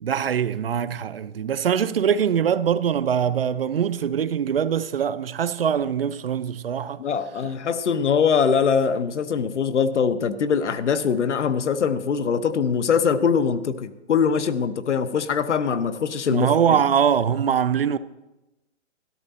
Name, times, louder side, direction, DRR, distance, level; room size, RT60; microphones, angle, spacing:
voice 1, 0.0-7.0 16.3-18.0, right 8 dB, 55° right, 0.5 m, -23 dB
voice 2, 7.0-16.8, left 6 dB, 75° left, 1.0 m, -22 dB
13.0 x 11.5 x 4.2 m
hypercardioid pair, 175°, 36 cm